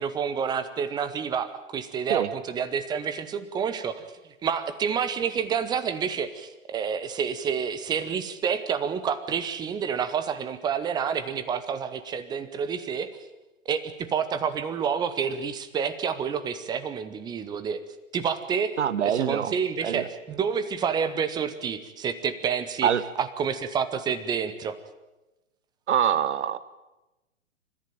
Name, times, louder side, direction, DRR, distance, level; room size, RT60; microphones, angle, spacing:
voice 1, 0.0-4.0 4.4-13.1 13.7-17.8 18.1-22.9 23.2-24.8, right 7 dB, 10° right, 13 dB, 1.0 m, -29 dB
voice 2, 18.8-19.5 19.8-20.1 22.8-23.0 25.9-26.6, right 9 dB, 55° right, 17 dB, 1.2 m, -24 dB
29.5 x 14.5 x 8.9 m, 1.0 s
figure-of-eight pair, 120°, 41 cm